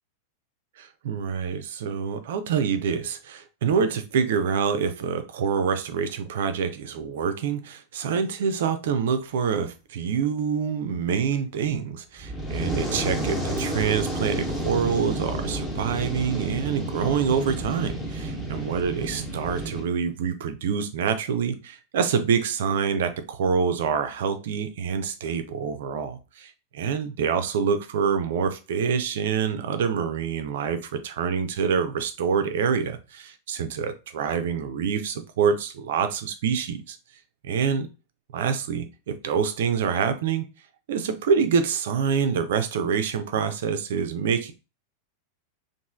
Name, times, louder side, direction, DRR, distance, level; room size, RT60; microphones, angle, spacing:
voice 1, 0.8-37.0 37.4-37.9 38.3-40.5 40.9-44.5, right 6 dB, 55° right, 9 dB, 0.4 m, -26 dB
Fire, 12.2-19.8, right 1 dB, 15° left, 1.0 m, -30 dB
3.0 x 2.5 x 2.3 m, 0.30 s
figure-of-eight pair, 90°, 0 cm